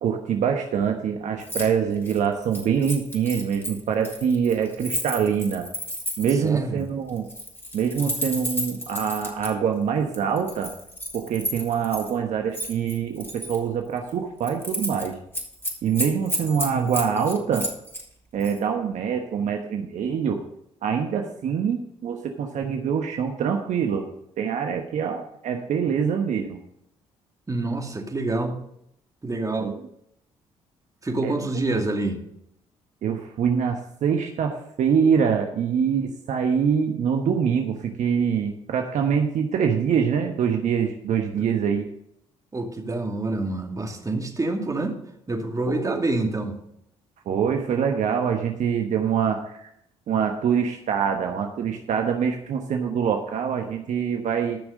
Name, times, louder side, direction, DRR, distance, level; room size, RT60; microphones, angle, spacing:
voice 1, 0.0-5.7 6.2-7.3 7.7-10.7 11.1-15.2 15.8-17.7 18.3-20.4 20.8-24.1 24.4-26.6 29.6-29.7 31.2-31.4 33.0-41.9 45.8-46.0 47.2-49.7 50.1-54.6, right 7 dB, 60° right, 3 dB, 1.2 m, -24 dB
Keys jangling, 1.4-1.7 2.0-6.5 7.2-9.5 10.1-12.1 12.5-13.6 14.0-14.1 14.4-15.1 15.3-18.0 18.4-18.6, equal, 15° left, 4.0 m, -32 dB
voice 2, 6.4-6.9 27.5-28.6 29.2-29.7 31.0-32.2 42.5-45.0 45.3-46.6, right 2 dB, 25° right, 2 dB, 2.5 m, -27 dB
14.0 x 6.1 x 6.4 m, 0.75 s
hypercardioid pair, 50°, 14 cm